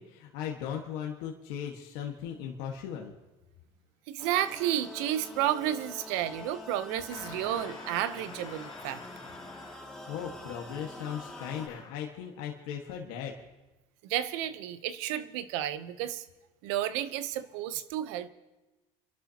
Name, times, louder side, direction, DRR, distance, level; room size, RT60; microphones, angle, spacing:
voice 1, 0.0-3.1 10.1-13.3, left 9 dB, 80° left, 0 dB, 1.6 m, -37 dB
voice 2, 4.1-9.0 14.0-16.2 16.6-18.3, right 12 dB, 85° right, 13 dB, 0.9 m, -31 dB
sound 1, 4.2-11.7, left 2 dB, 5° left, 2.4 m, -46 dB
sound 2, 7.1-10.1 11.3-12.1, left 4 dB, 30° left, 3.8 m, -47 dB
28.5 x 12.0 x 2.9 m, 1.1 s
supercardioid pair, 110°, 15 cm